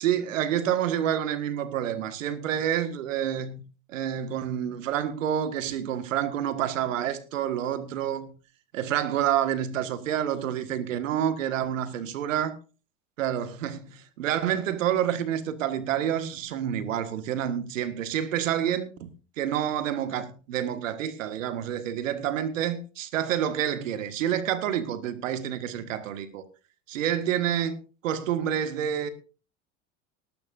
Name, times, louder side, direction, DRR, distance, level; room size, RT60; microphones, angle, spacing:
voice 1, 0.0-3.6 3.9-8.3 8.7-12.6 13.2-26.4 26.9-27.8 28.0-29.1, right 10 dB, 85° right, 1.6 m, -28 dB
19.5 x 12.0 x 2.5 m
hypercardioid pair, 85°, 38 cm